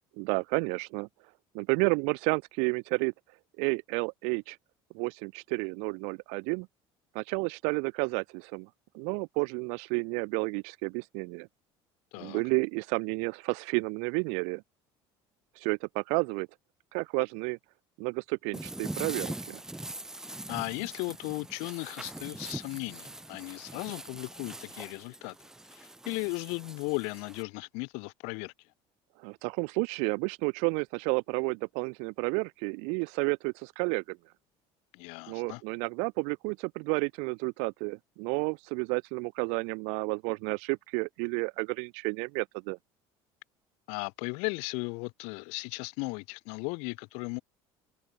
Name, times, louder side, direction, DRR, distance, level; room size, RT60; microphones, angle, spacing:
voice 1, 0.2-1.1 1.5-3.1 3.6-4.6 4.9-6.7 7.2-8.7 8.9-11.5 12.2-14.6 15.6-16.5 16.9-17.6 18.0-19.6 29.2-34.2 35.3-42.8, right 38 dB, 85° right, 1.9 m, -31 dB
voice 2, 12.1-12.4 20.5-25.3 25.8-28.5 34.9-35.6 43.9-47.4, left 34 dB, 80° left, 3.6 m, -36 dB
sound 1, 18.5-27.4, right 1 dB, 5° right, 1.9 m, -42 dB
cardioid pair, 170°, 11 cm